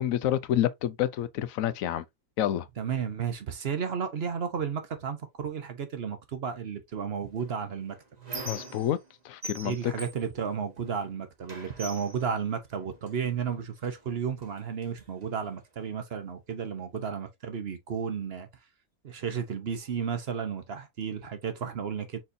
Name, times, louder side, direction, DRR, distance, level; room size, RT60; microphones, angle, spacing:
voice 1, 0.0-2.0 2.4-2.7 8.5-9.0 9.2-9.9, left 11 dB, 85° left, 1.0 m, -28 dB
voice 2, 2.8-8.0 9.6-18.5 19.0-22.2, right 7 dB, 55° right, 1.0 m, -33 dB
Squeak, 7.4-9.1 9.4-11.1 11.5-13.2 13.9-14.1 14.4-15.4, right 2 dB, 35° right, 1.2 m, -43 dB
4.4 x 4.0 x 2.6 m
omnidirectional pair, 1.4 m